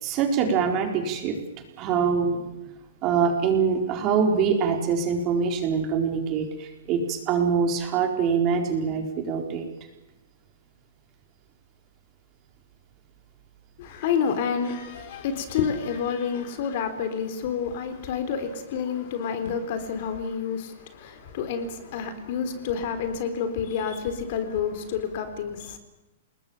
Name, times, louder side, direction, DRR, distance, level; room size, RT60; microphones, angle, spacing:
voice 1, 0.0-1.4 1.8-2.4 3.0-9.6, right 6 dB, 25° right, 4.3 m, -24 dB
voice 2, 13.8-25.8, left 7 dB, 45° left, 3.8 m, -29 dB
30.0 x 20.5 x 7.3 m
hypercardioid pair, 165°, 0 cm